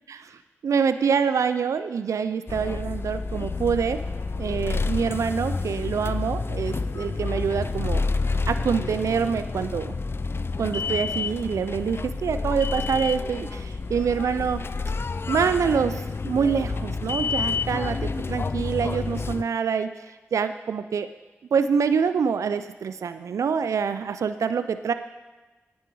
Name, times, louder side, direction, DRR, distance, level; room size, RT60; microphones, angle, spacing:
voice 1, 0.1-4.0 4.4-8.0 8.5-10.0 10.6-14.6 15.3-20.1 20.3-21.1 21.5-24.9, right 6 dB, 90° right, 11 dB, 0.4 m, -26 dB
sound 1, 2.5-19.4, left 4 dB, 50° left, 0.4 m, -29 dB
9.3 x 9.3 x 4.6 m, 1.1 s
cardioid pair, 40°, 5 cm